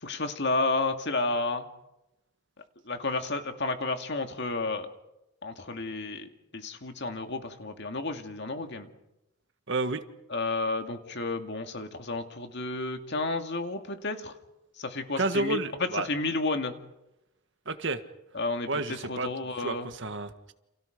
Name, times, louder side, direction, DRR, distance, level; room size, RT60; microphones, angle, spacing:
voice 1, 0.0-1.7 2.9-4.9 5.4-8.9 10.3-14.3 14.8-16.7 18.3-19.9, left 3 dB, 55° left, 6 dB, 2.2 m, -31 dB
voice 2, 9.7-10.0 15.2-16.1 17.6-18.0 18.7-19.3 19.6-20.5, right 2 dB, 55° right, 9 dB, 1.6 m, -30 dB
29.5 x 28.0 x 5.2 m, 0.91 s
head